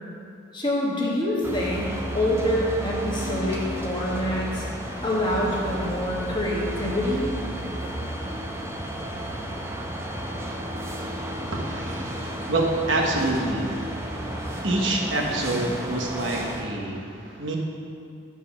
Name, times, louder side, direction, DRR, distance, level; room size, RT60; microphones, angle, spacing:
voice 1, 0.5-4.7 5.0-7.3, left 1 dB, 25° left, -4 dB, 1.3 m, -26 dB
sound 1, 1.4-16.6, equal, 15° right, 0.7 m, -32 dB
voice 2, 11.5-17.6, right 2 dB, 70° right, 0 dB, 1.1 m, -27 dB
9.2 x 4.7 x 5.8 m, 2.4 s
head